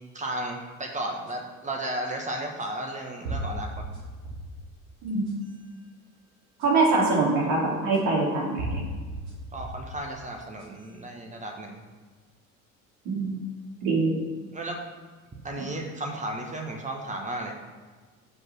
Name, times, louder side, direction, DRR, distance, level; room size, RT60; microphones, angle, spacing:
voice 1, 0.1-4.0 9.5-11.8 14.5-14.8 15.4-17.5, right 1 dB, 15° right, 1 dB, 1.2 m, -34 dB
sound 1, 1.3-1.4 2.6-2.7 3.2-4.6 5.1-5.6 6.6-6.7 7.9-8.0 8.6-9.9 10.4-11.0, right 1 dB, 75° right, 2.5 m, -35 dB
voice 2, 5.0-5.4 6.6-8.9 13.0-13.4 13.8-14.2, right 3 dB, 55° right, -2 dB, 2.6 m, -24 dB
5.9 x 5.3 x 6.0 m, 1.4 s
figure-of-eight pair, 65°, 43 cm